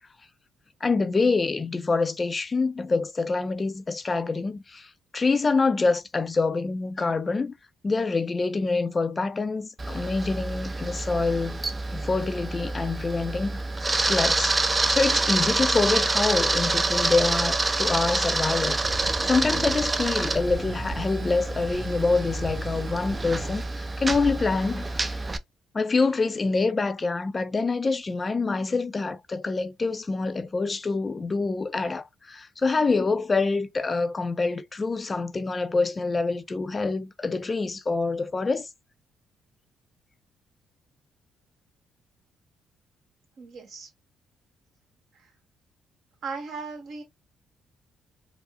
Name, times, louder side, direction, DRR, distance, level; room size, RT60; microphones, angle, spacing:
voice 1, 0.8-7.5 7.8-11.6 11.9-14.6 14.9-25.2 25.7-38.7, left 3 dB, 30° left, 0.4 m, -26 dB
Camera, 9.8-25.4, right 2 dB, 25° right, 0.5 m, -27 dB
sound 1, 18.6-23.6, right 3 dB, 40° right, 1.1 m, -39 dB
voice 2, 43.4-43.9 45.1-45.3 46.2-47.0, right 4 dB, 65° right, 1.4 m, -37 dB
4.7 x 2.0 x 2.5 m
cardioid pair, 90°, 0 cm